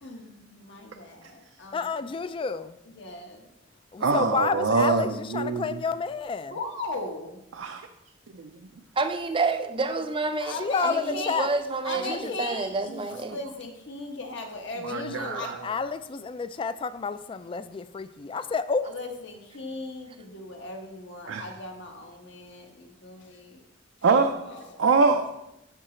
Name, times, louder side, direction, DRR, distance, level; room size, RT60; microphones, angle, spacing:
voice 1, 0.0-1.9 2.9-3.5 6.5-7.4 10.4-11.4 11.8-13.0 13.3-15.5 18.8-23.6 24.4-24.8, left 2 dB, 65° left, 2 dB, 1.2 m, -38 dB
voice 2, 1.7-2.8 3.9-6.6 10.5-11.5 12.0-12.4 14.8-18.9, left 5 dB, 25° left, 13 dB, 0.3 m, -30 dB
voice 3, 4.0-5.8 7.6-7.8 14.8-15.7 21.3-21.5 24.0-24.3 24.8-25.3, right 4 dB, 75° right, 5 dB, 0.5 m, -24 dB
voice 4, 9.0-13.4, right 3 dB, 25° right, 8 dB, 0.5 m, -29 dB
11.0 x 3.9 x 4.4 m, 0.88 s
head